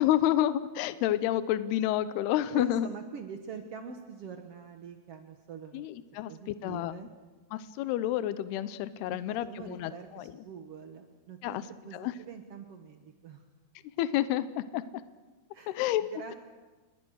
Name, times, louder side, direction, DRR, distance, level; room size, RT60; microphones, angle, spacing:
voice 1, 0.0-2.9 5.7-7.0 7.5-10.3 11.4-11.6 11.9-12.1 14.0-14.8 15.7-16.0, left 12 dB, 80° left, 14 dB, 2.8 m, -29 dB
voice 2, 2.5-5.8 6.3-7.1 9.1-11.6 11.8-13.4 15.5-15.8 16.1-16.3, right 6 dB, 80° right, 5 dB, 1.3 m, -45 dB
28.5 x 21.5 x 6.4 m, 1.2 s
omnidirectional pair, 4.8 m